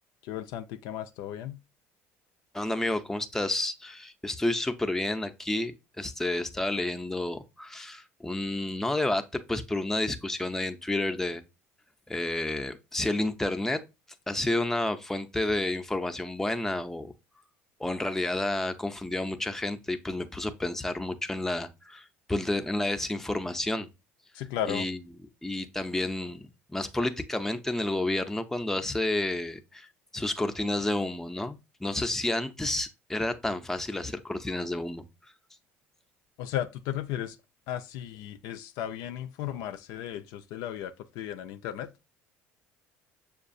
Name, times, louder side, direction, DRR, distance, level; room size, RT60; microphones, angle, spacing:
voice 1, 0.2-1.6 24.3-24.9 36.4-37.4 37.7-41.9, left 11 dB, 70° left, 0.3 m, -35 dB
voice 2, 2.5-5.7 6.0-9.2 9.5-11.4 12.1-13.8 14.3-17.1 17.8-23.9 24.7-25.0 25.4-26.4 26.7-29.9 30.1-35.0, left 2 dB, 5° left, 0.5 m, -30 dB
6.7 x 2.3 x 2.5 m
hypercardioid pair, 75°, 7 cm